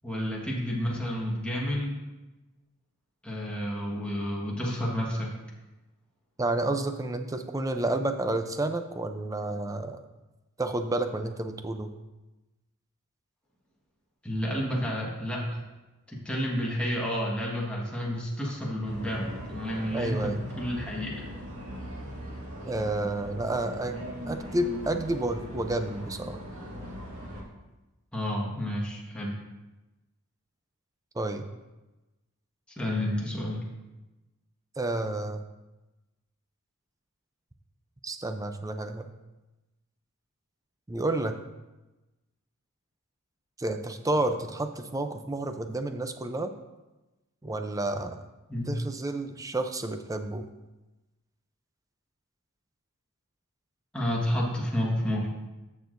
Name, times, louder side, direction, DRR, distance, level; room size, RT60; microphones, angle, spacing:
voice 1, 0.0-2.0 3.2-5.3 14.2-15.6 16.1-21.1 28.1-29.3 32.8-33.6 48.5-48.8 53.9-55.3, equal, 5° left, -4 dB, 1.4 m, -30 dB
voice 2, 6.4-10.0 10.6-11.9 19.9-20.5 22.7-24.0 24.3-26.4 31.1-31.5 34.8-35.4 38.0-39.1 40.9-41.4 43.6-46.5 47.4-48.2 48.7-50.5, right 2 dB, 15° right, 7 dB, 0.5 m, -30 dB
sound 1, 18.8-27.4, equal, 80° right, 1.9 m, -39 dB
13.5 x 6.3 x 2.6 m, 1.1 s
head